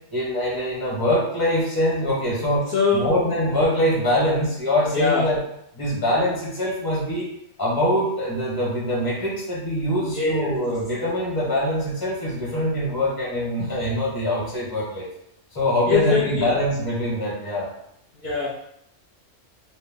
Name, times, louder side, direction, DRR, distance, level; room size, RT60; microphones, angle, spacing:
voice 1, 0.1-5.4 5.8-7.3 7.6-15.1 15.5-17.7, equal, 20° left, -5 dB, 0.8 m, -23 dB
voice 2, 2.7-3.2 4.9-5.3 10.1-10.6 15.9-16.6 18.1-18.5, left 5 dB, 55° left, -8 dB, 0.8 m, -22 dB
2.7 x 2.1 x 3.5 m, 0.75 s
omnidirectional pair, 1.3 m